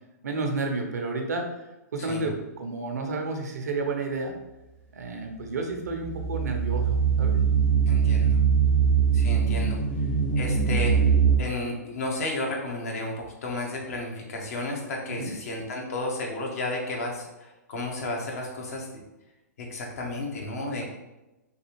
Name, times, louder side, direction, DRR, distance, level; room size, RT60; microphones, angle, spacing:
voice 1, 0.2-1.5 1.9-4.4 4.9-7.4 15.2-15.3, right 3 dB, 70° right, 3 dB, 0.6 m, -31 dB
sound 1, 5.8-11.4, right 7 dB, 20° left, 0.5 m, -22 dB
voice 2, 7.9-8.4 9.1-9.8 10.3-11.0 11.4-17.3 17.7-18.9 19.7-20.8, left 2 dB, 60° left, -1 dB, 0.9 m, -32 dB
3.2 x 2.4 x 3.0 m, 1.0 s
figure-of-eight pair, 120°, 9 cm